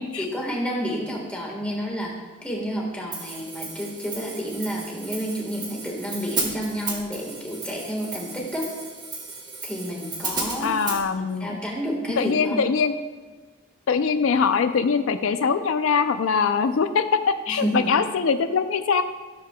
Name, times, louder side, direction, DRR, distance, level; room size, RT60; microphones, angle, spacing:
voice 1, 0.2-8.8 9.6-10.8 11.2-12.6 17.5-17.9, equal, 5° left, -2 dB, 1.4 m, -30 dB
Hi-hat, 3.1-11.0, right 3 dB, 20° right, 1.1 m, -34 dB
voice 2, 10.6-11.6 12.2-12.9 13.9-19.0, left 5 dB, 90° left, 10 dB, 0.4 m, -22 dB
13.0 x 6.8 x 2.2 m, 1.3 s
head